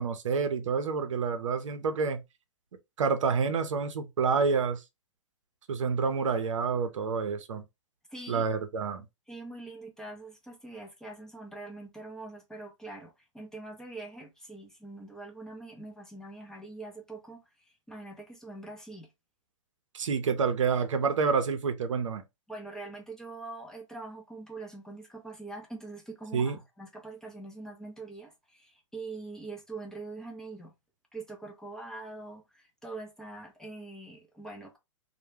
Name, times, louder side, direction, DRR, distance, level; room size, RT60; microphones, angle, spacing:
voice 1, 0.0-2.2 3.0-4.8 5.7-7.6 8.3-9.0 19.9-22.2 26.3-26.6, right 5 dB, 75° right, 0.5 m, -28 dB
voice 2, 8.1-8.5 9.3-19.1 22.5-30.7 31.1-34.8, right 2 dB, 5° left, 0.4 m, -43 dB
2.2 x 2.0 x 3.1 m
hypercardioid pair, 120°, 16 cm